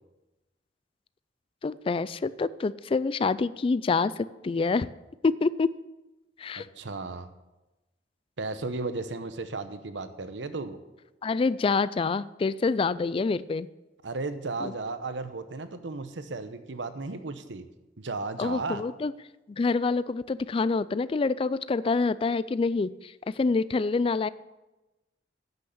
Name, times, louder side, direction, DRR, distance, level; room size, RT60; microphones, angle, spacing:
voice 1, 1.6-4.9 5.2-5.7 6.4-6.7 11.2-13.7 14.6-14.7 18.4-19.1 19.5-24.3, left 4 dB, 30° left, 17 dB, 0.3 m, -26 dB
voice 2, 6.5-7.3 8.4-10.8 14.0-17.6 18.0-18.8, right 3 dB, 85° right, 11 dB, 0.9 m, -35 dB
10.5 x 6.3 x 7.1 m, 1.0 s
head